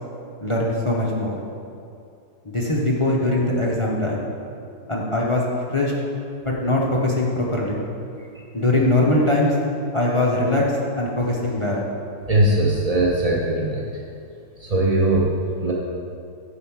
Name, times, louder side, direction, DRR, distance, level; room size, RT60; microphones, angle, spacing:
voice 1, 0.4-1.4 2.4-4.2 4.9-5.4 5.7-5.9 6.4-7.8 8.5-9.6 9.9-11.8, left 1 dB, 30° left, -3 dB, 0.6 m, -21 dB
voice 2, 12.3-13.8 14.6-15.7, right 1 dB, 45° right, -3 dB, 0.4 m, -20 dB
9.8 x 4.7 x 7.3 m, 2.5 s
omnidirectional pair, 2.0 m